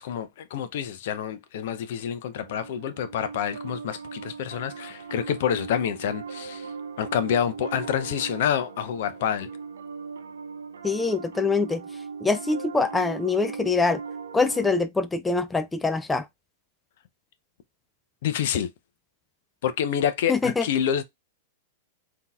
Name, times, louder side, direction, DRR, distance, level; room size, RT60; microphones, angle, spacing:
voice 1, 0.0-6.7 7.0-9.5 18.2-18.7 19.6-21.0, left 9 dB, 65° left, 0.6 m, -27 dB
Piano, 2.4-14.8, right 5 dB, 85° right, 0.5 m, -39 dB
voice 2, 10.8-11.8 12.2-14.0 14.3-16.2 20.3-20.6, left 4 dB, 10° left, 0.3 m, -24 dB
3.8 x 2.8 x 2.3 m
hypercardioid pair, 115°, 0 cm